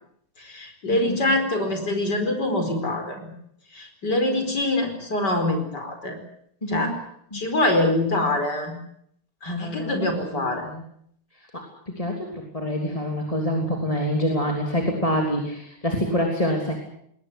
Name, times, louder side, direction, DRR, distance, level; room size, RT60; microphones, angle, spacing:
voice 1, 0.4-3.3 3.7-6.2 6.7-6.9 7.3-8.8 9.4-10.7, left 1 dB, 55° left, 6 dB, 5.3 m, -24 dB
voice 2, 0.9-1.3 6.6-6.9 7.3-7.4 9.5-10.8 11.3-16.7, equal, 15° left, 1 dB, 3.2 m, -27 dB
21.5 x 19.0 x 9.6 m, 0.70 s
omnidirectional pair, 2.2 m